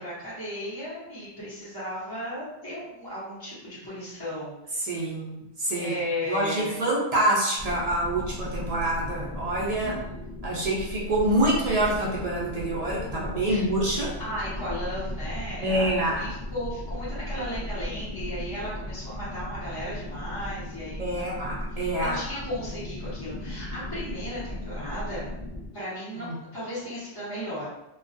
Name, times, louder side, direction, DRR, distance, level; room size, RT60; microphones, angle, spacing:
voice 1, 0.0-5.1 5.8-6.8 9.8-10.0 13.5-13.6 14.2-25.2 25.7-26.3 26.5-27.7, equal, 20° left, -13 dB, 0.8 m, -35 dB
voice 2, 4.8-6.0 6.3-10.0 10.4-14.2 15.6-16.3 21.0-22.2 26.2-26.4, right 1 dB, 65° right, -4 dB, 0.3 m, -26 dB
sound 1, 7.6-25.7, left 1 dB, 35° right, 0.9 m, -36 dB
2.2 x 2.2 x 2.5 m, 0.91 s
omnidirectional pair, 1.2 m